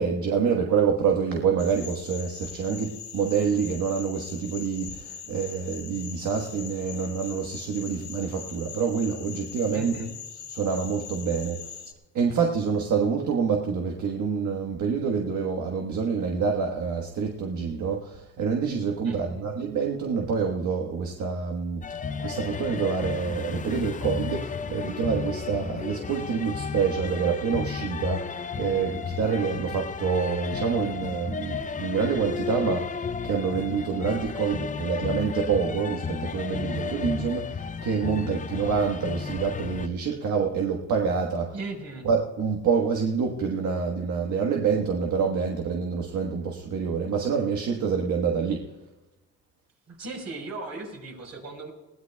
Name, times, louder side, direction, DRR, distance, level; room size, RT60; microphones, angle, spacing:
voice 1, 0.0-11.8 12.1-21.8 22.2-41.7 42.0-48.6, right 6 dB, 75° right, 1 dB, 1.4 m, -27 dB
sound 1, 1.6-11.9, left 8 dB, 60° left, 1.4 m, -42 dB
voice 2, 9.7-10.1 11.8-11.9 19.0-19.4 41.5-42.1 49.9-51.7, right 3 dB, 60° right, 2 dB, 4.5 m, -37 dB
sound 2, 21.8-39.9, left 6 dB, 25° left, 0.5 m, -33 dB
20.5 x 16.5 x 2.3 m, 1.1 s
cardioid pair, 90°, 30 cm